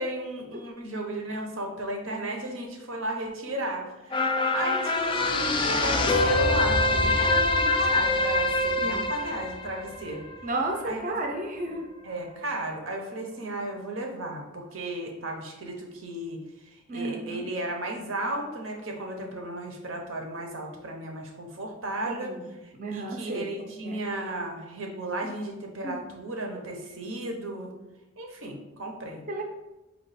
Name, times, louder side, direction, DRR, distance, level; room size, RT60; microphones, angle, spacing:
voice 1, 0.0-10.3 10.8-11.1 11.7-11.8 12.0-22.3 22.6-27.7 28.2-29.2, right 1 dB, 85° right, 1 dB, 0.8 m, -34 dB
sound 1, 4.1-10.8 11.2-11.3, left 2 dB, 25° left, 0.3 m, -25 dB
voice 2, 10.4-11.9 16.9-17.5 22.1-22.5 22.8-23.5 23.8-24.0 25.2-25.3 25.8-25.9 29.3-29.4, right 2 dB, 40° right, 2 dB, 0.5 m, -33 dB
4.4 x 2.3 x 4.0 m, 1.0 s
head